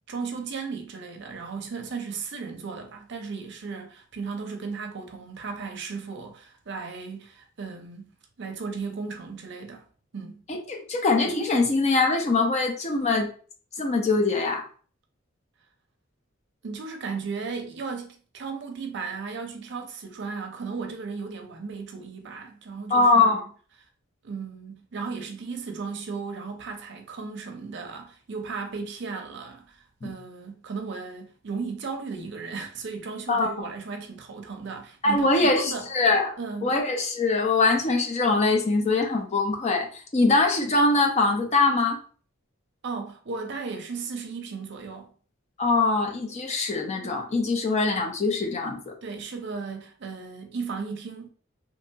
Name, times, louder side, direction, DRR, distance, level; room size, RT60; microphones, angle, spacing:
voice 1, 0.1-8.1 8.4-9.9 10.1-10.4 16.6-23.5 24.2-35.9 36.4-36.8 42.8-45.1 49.0-51.3, right 4 dB, 60° right, 0.6 m, -35 dB
voice 2, 10.5-13.3 13.8-14.6 22.9-23.4 30.0-30.1 33.3-33.7 35.0-36.3 36.6-42.0 45.6-48.9, left 3 dB, 35° left, 0.5 m, -23 dB
2.9 x 2.8 x 2.2 m
head